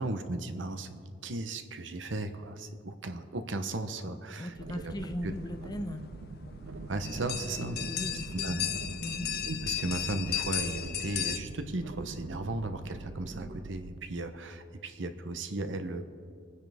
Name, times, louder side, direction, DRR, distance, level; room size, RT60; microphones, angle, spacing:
voice 1, 0.0-4.9 5.2-5.3 6.9-7.8 8.4-8.7 9.5-16.0, right 2 dB, 70° right, 8 dB, 1.0 m, -36 dB
voice 2, 4.4-6.0 7.6-8.6 9.0-9.3, equal, 20° left, 8 dB, 0.7 m, -38 dB
sound 1, 4.5-14.0, right 4 dB, 90° right, 0.5 m, -45 dB
sound 2, 4.8-11.4, left 10 dB, 55° left, 0.8 m, -36 dB
sound 3, 6.5-10.0 11.6-13.7, right 1 dB, 40° right, 1.3 m, -47 dB
25.5 x 9.7 x 3.5 m, 2.3 s
head